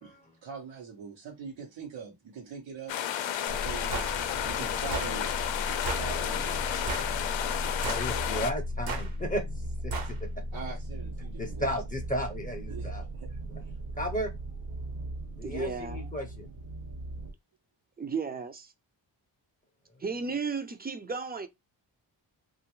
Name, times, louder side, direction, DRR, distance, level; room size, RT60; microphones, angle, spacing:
voice 1, 0.0-3.0 3.5-4.1 4.4-5.3 5.7-6.7 10.5-11.7 12.7-13.3 13.6-13.8, right 5 dB, 90° right, 1.0 m, -43 dB
sound 1, 2.9-8.5, left 10 dB, 80° left, 0.6 m, -32 dB
sound 2, 3.5-17.3, equal, 70° right, 1.2 m, -37 dB
sound 3, 3.9-4.1 4.9-5.1 5.9-6.1 6.9-7.2 7.8-8.1 8.9-9.1 9.9-10.1, right 4 dB, 55° right, 0.8 m, -34 dB
voice 2, 7.8-9.4 9.8-10.4 11.4-13.1 14.0-14.3 15.4-16.5, equal, 20° left, 0.6 m, -34 dB
voice 3, 15.4-16.1 18.0-18.7 20.0-21.5, right 4 dB, 20° right, 0.5 m, -34 dB
3.0 x 2.4 x 3.0 m
cardioid pair, 105°, 44 cm